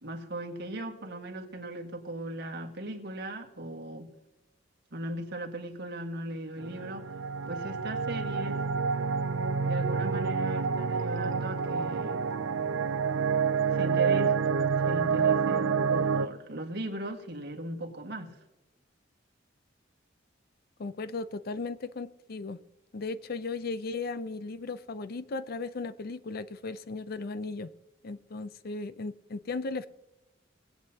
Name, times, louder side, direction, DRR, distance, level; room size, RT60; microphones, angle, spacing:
voice 1, 0.0-4.1 4.9-7.1 7.5-8.7 9.7-12.2 13.7-14.4 14.8-18.4, right 1 dB, 60° right, 2 dB, 1.7 m, -38 dB
sound 1, 6.6-16.3, right 5 dB, 90° right, 0.4 m, -28 dB
voice 2, 20.8-22.6 22.9-27.7 28.0-29.9, left 3 dB, 55° left, 14 dB, 0.5 m, -36 dB
20.5 x 8.2 x 2.8 m, 1.0 s
head